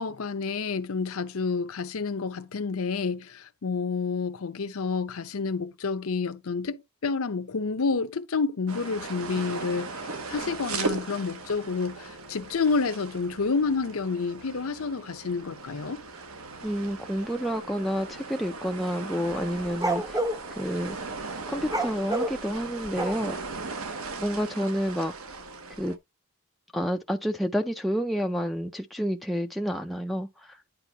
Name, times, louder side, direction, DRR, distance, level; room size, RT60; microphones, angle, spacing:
voice 1, 0.0-16.0, left 4 dB, 85° left, 0.7 m, -29 dB
sound 1, 8.7-26.0, right 3 dB, 80° right, 1.0 m, -38 dB
voice 2, 16.6-20.2 20.6-21.0 21.5-23.4 24.2-25.1 25.8-26.0 26.7-30.6, equal, ahead, 0.4 m, -29 dB
sound 2, 19.3-20.4 21.6-23.5, right 1 dB, 15° right, 0.8 m, -28 dB
9.9 x 4.2 x 2.8 m
head